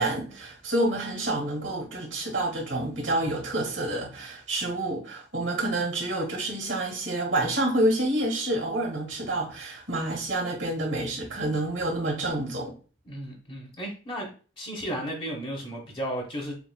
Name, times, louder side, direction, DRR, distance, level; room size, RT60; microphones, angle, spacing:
voice 1, 0.0-12.7, right 1 dB, 90° right, 1.6 m, -28 dB
voice 2, 13.0-14.3 14.6-16.6, equal, 30° left, 1.0 m, -34 dB
6.9 x 2.4 x 2.2 m
head